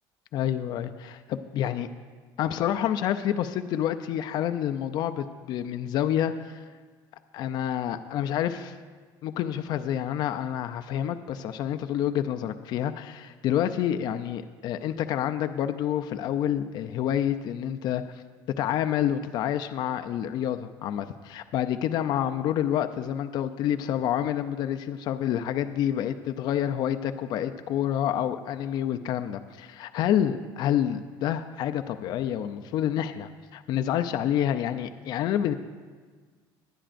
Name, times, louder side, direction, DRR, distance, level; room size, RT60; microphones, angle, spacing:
voice 1, 0.3-1.9 2.4-6.6 7.3-8.8 9.2-18.0 18.6-35.5, left 10 dB, 45° left, 9 dB, 0.4 m, -28 dB
19.0 x 11.0 x 2.5 m, 1.5 s
cardioid pair, 165°, 10 cm